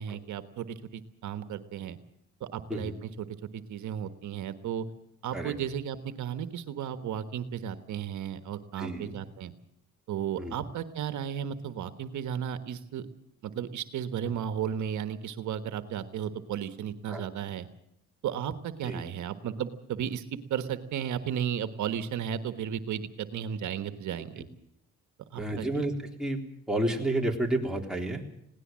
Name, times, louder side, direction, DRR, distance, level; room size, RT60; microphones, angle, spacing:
voice 1, 0.0-2.0 2.4-3.3 3.5-4.9 5.2-9.5 10.1-13.1 13.4-17.7 18.2-24.5 25.3-25.7, right 9 dB, 75° right, 10 dB, 1.4 m, -34 dB
voice 2, 8.8-9.2 10.4-10.5 17.1-17.3 18.9-19.0 25.4-26.4 26.7-28.2, right 1 dB, ahead, 0 dB, 3.7 m, -30 dB
21.0 x 17.5 x 7.5 m, 0.74 s
cardioid pair, 90°, 30 cm